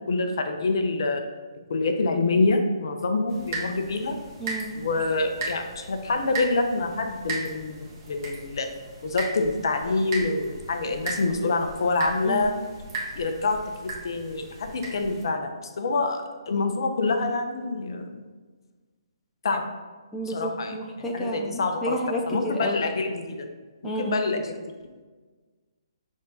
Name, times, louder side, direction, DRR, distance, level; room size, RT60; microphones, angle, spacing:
voice 1, 0.1-1.2 1.7-4.2 4.8-8.7 9.0-12.5 13.2-18.2 19.4-19.6 20.3-20.7 21.1-22.0 22.3-23.5 23.8-24.6, left 3 dB, 60° left, 5 dB, 0.7 m, -26 dB
sound 1, 3.3-15.2, right 2 dB, 40° right, 1.5 m, -37 dB
voice 2, 4.4-4.8 12.2-12.5 20.1-22.9 23.8-24.2, equal, 10° left, -2 dB, 0.5 m, -31 dB
6.3 x 3.6 x 4.1 m, 1.4 s
figure-of-eight pair, 135°, 3 cm